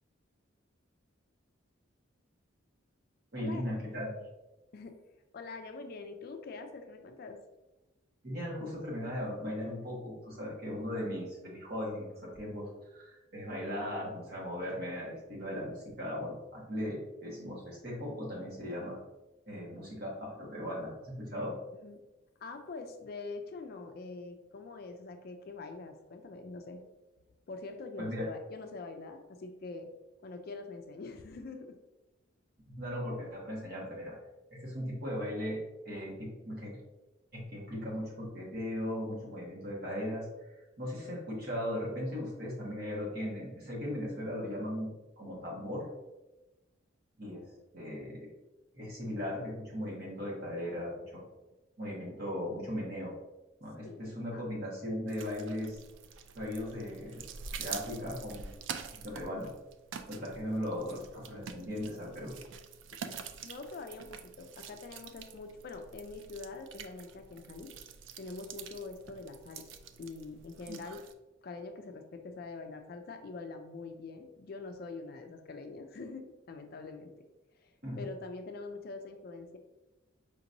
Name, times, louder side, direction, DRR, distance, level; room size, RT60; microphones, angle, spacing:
voice 1, 3.3-4.1 8.2-19.0 19.5-21.6 28.0-28.3 32.6-34.1 34.5-35.6 35.8-36.8 37.3-40.3 40.8-44.9 45.2-45.9 47.2-47.5 47.7-48.4 48.7-51.2 51.8-53.1 53.6-55.8 56.3-57.2 57.6-58.5 59.0-59.5 60.1-62.3 77.8-78.0, left 1 dB, 50° right, -4 dB, 1.4 m, -38 dB
voice 2, 5.3-7.4 21.8-22.0 22.4-26.8 27.5-29.9 30.2-31.8 53.8-54.4 60.1-60.3 63.0-67.7 68.2-69.7 70.0-71.0 71.4-77.1 77.6-79.6, left 3 dB, 50° left, 6 dB, 0.4 m, -44 dB
sound 1, 55.1-71.1, right 6 dB, 70° right, 0.3 m, -47 dB
5.1 x 2.9 x 2.6 m, 1.0 s
head